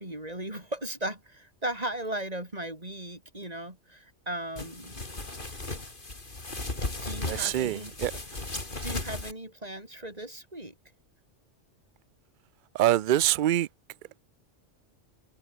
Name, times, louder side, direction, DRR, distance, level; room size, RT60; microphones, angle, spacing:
voice 1, 0.0-5.0 7.0-7.9 8.8-10.7, right 1 dB, 35° right, 6.1 m, -37 dB
sound 1, 4.6-9.3, left 2 dB, 45° left, 3.4 m, -36 dB
voice 2, 7.3-8.1 12.7-13.7, right 13 dB, 55° right, 0.6 m, -25 dB
omnidirectional pair, 1.2 m